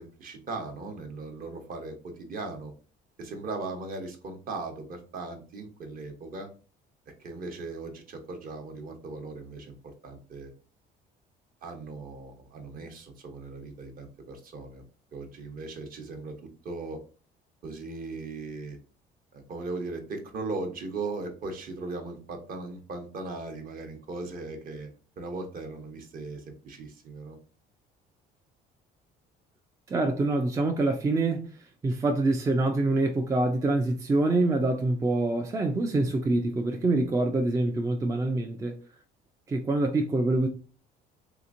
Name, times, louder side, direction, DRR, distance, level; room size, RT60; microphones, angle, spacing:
voice 1, 0.0-2.7 3.2-6.5 7.2-9.7 10.0-10.5 11.6-14.8 15.1-16.4 16.6-17.0 17.6-18.8 19.3-24.9 25.2-27.4, right 3 dB, 50° right, 0.9 m, -38 dB
voice 2, 29.9-31.5 31.8-38.8 39.5-40.5, right 2 dB, 15° right, 0.3 m, -25 dB
3.4 x 2.9 x 2.5 m
cardioid pair, 110°, 19 cm